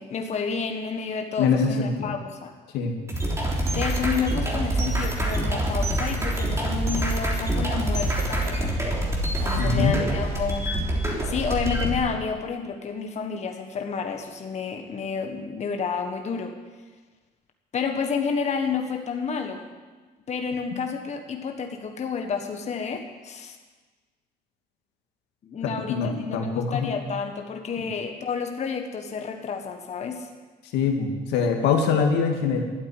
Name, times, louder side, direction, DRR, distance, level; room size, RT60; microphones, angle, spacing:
voice 1, 0.0-2.5 3.7-8.7 9.4-10.7 11.2-16.5 17.7-19.7 20.3-23.6 25.4-30.3, left 5 dB, 40° left, 4 dB, 1.5 m, -30 dB
voice 2, 1.4-2.2 2.7-2.9 9.6-10.0 25.6-26.9 30.7-32.6, left 5 dB, 90° left, 3 dB, 2.1 m, -23 dB
sound 1, 3.1-12.0, right 1 dB, 15° right, 3.4 m, -26 dB
12.5 x 8.6 x 9.7 m, 1.3 s
cardioid pair, 110°, 17 cm